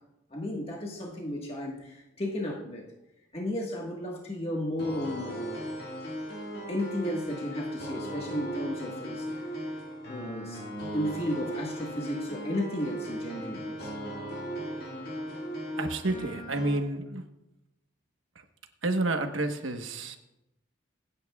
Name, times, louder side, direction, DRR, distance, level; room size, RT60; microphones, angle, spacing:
voice 1, 0.3-2.8 3.3-5.7 6.7-9.3 10.1-13.9, left 1 dB, 30° left, -1 dB, 1.5 m, -34 dB
sound 1, 4.8-16.8, equal, 50° left, 2.0 m, -37 dB
voice 2, 15.8-17.3 18.8-20.2, right 2 dB, 90° right, 6 dB, 1.2 m, -30 dB
25.5 x 9.0 x 2.3 m, 0.92 s
head